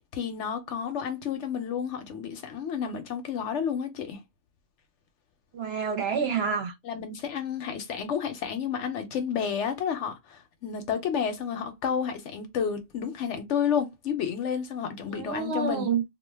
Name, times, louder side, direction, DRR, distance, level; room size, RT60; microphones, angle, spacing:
voice 1, 0.1-4.2 6.2-6.3 6.8-15.9, left 7 dB, 70° left, 0.8 m, -31 dB
voice 2, 5.5-6.7 15.1-16.0, right 6 dB, 60° right, 0.8 m, -28 dB
2.4 x 2.2 x 3.3 m
omnidirectional pair, 1.4 m